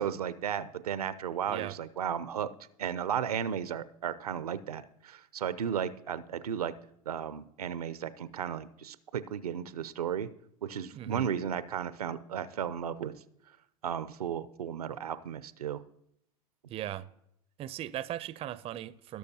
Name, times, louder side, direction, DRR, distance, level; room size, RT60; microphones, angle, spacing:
voice 1, 0.0-2.5 2.8-6.7 7.1-10.3 10.6-13.1 13.8-15.8, right 8 dB, 85° right, 0.5 m, -34 dB
voice 2, 10.9-11.3 16.7-17.1 17.6-19.2, right 12 dB, 30° right, 0.4 m, -38 dB
16.5 x 6.5 x 2.7 m
hypercardioid pair, 85°, 19 cm